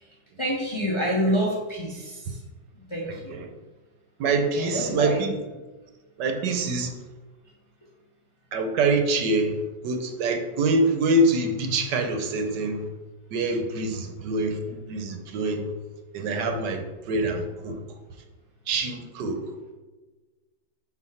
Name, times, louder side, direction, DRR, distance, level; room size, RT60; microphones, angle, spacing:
voice 1, 0.4-2.4 2.9-3.4 4.5-5.3, equal, 40° left, -4 dB, 0.4 m, -27 dB
voice 2, 3.1-3.5 4.2-5.3 6.2-6.9 8.5-9.5 9.8-12.9 13.3-15.7 16.1-17.8 18.7-19.4, right 2 dB, 70° right, 5 dB, 1.2 m, -25 dB
4.3 x 4.2 x 5.6 m, 1.2 s
omnidirectional pair, 2.2 m